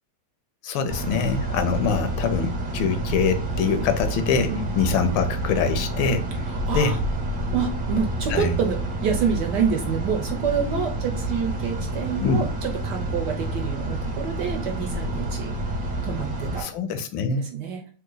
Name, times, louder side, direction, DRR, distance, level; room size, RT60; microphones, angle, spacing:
voice 1, 0.6-6.3 6.7-6.9 8.3-8.5 12.2-12.5 16.6-17.5, left 5 dB, 75° left, 8 dB, 1.4 m, -24 dB
sound 1, 0.9-16.6, right 2 dB, 30° right, 1.0 m, -29 dB
voice 2, 6.5-7.0 7.5-15.5 16.0-16.7 17.4-17.8, right 6 dB, 65° right, 3 dB, 1.1 m, -27 dB
3.8 x 2.8 x 3.8 m, 0.43 s
omnidirectional pair, 2.3 m